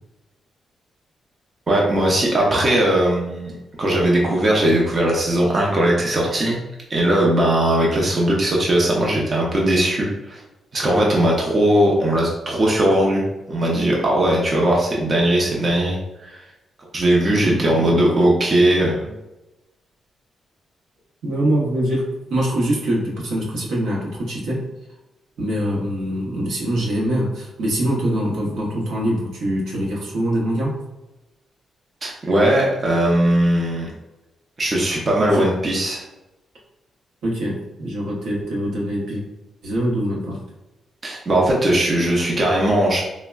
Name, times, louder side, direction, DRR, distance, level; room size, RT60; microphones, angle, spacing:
voice 1, 1.7-3.5 3.8-6.6 6.9-10.4 10.7-13.2 13.5-16.4 16.9-19.1 32.0-33.9 34.6-36.0 41.0-43.0, right 1 dB, 35° right, -3 dB, 0.5 m, -19 dB
voice 2, 17.3-18.0 21.2-24.6 25.4-30.8 35.3-35.4 37.2-39.2 39.6-40.4, right 1 dB, 80° right, -3 dB, 0.8 m, -24 dB
3.3 x 2.0 x 2.2 m, 0.99 s
cardioid pair, 105°, 0 cm